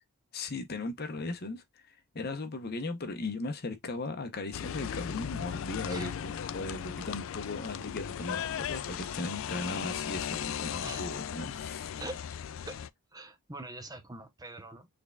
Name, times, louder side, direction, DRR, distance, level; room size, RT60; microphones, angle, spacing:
voice 1, 0.3-11.9, left 3 dB, 45° left, 0.7 m, -37 dB
sound 1, 4.5-12.9, left 8 dB, 65° left, 0.3 m, -37 dB
voice 2, 13.1-14.9, right 2 dB, 15° right, 0.8 m, -43 dB
6.3 x 3.5 x 2.2 m
head